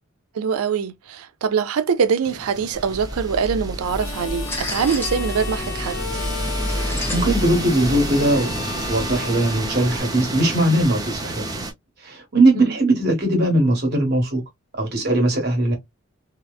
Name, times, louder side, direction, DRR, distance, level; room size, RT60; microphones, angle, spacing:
voice 1, 0.3-6.0 12.6-12.8, right 6 dB, 85° right, 0.4 m, -23 dB
sound 1, 2.2-11.7, right 2 dB, 15° right, 0.5 m, -31 dB
sound 2, 2.7-10.0, equal, 10° left, 0.9 m, -30 dB
Harmonica, 3.8-10.8, left 7 dB, 70° left, 0.7 m, -35 dB
voice 2, 7.1-8.5 8.9-11.4 12.0-14.4 14.8-15.8, right 1 dB, 45° right, 1.3 m, -19 dB
2.9 x 2.1 x 2.3 m
head